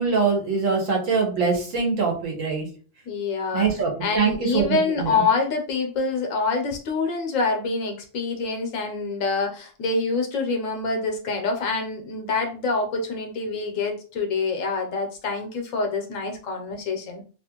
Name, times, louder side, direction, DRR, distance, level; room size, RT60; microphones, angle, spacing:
voice 1, 0.0-2.7 3.5-5.2, right 5 dB, 85° right, 1 dB, 1.3 m, -23 dB
voice 2, 3.1-3.7 4.0-17.2, left 4 dB, 85° left, 3 dB, 1.1 m, -26 dB
2.9 x 2.4 x 2.9 m, 0.38 s
omnidirectional pair, 1.3 m